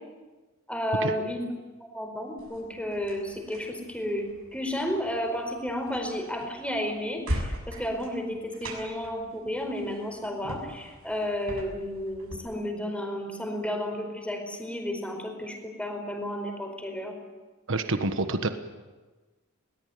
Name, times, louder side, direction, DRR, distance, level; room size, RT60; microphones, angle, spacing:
voice 1, 0.7-1.5 1.8-17.1, equal, 5° left, 3 dB, 4.6 m, -32 dB
sound 1, 2.4-12.4, equal, 90° right, 6.7 m, -40 dB
voice 2, 17.7-18.5, right 2 dB, 65° right, 8 dB, 1.4 m, -27 dB
21.5 x 19.5 x 9.4 m, 1.3 s
head